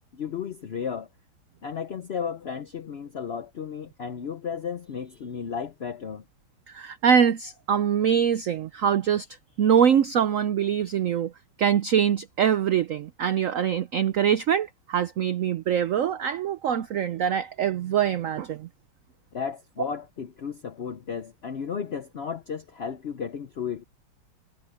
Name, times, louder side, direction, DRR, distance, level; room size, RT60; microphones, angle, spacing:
voice 1, 0.1-1.1 1.6-6.2 19.3-23.8, left 7 dB, 70° left, 0.6 m, -34 dB
voice 2, 6.7-9.3 9.6-11.3 11.6-18.7, right 8 dB, 85° right, 0.7 m, -23 dB
omnidirectional pair, 2.1 m